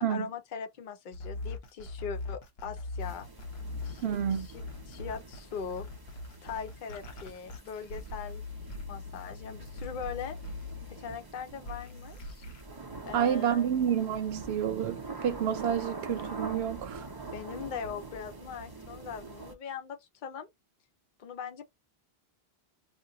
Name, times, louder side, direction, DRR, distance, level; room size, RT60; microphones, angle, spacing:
voice 1, 0.1-3.3 3.8-5.9 6.4-8.4 8.9-10.4 10.9-12.4 13.1-13.7 17.3-20.5 21.2-21.7, left 7 dB, 55° left, 0.7 m, -40 dB
sound 1, 1.1-11.2 11.6-12.6, left 2 dB, 80° left, 0.9 m, -41 dB
sound 2, 3.0-19.5, right 3 dB, 30° right, 0.5 m, -45 dB
voice 2, 4.0-4.5 13.1-17.0, right 9 dB, 90° right, 0.8 m, -29 dB
2.5 x 2.1 x 3.8 m
omnidirectional pair, 1.0 m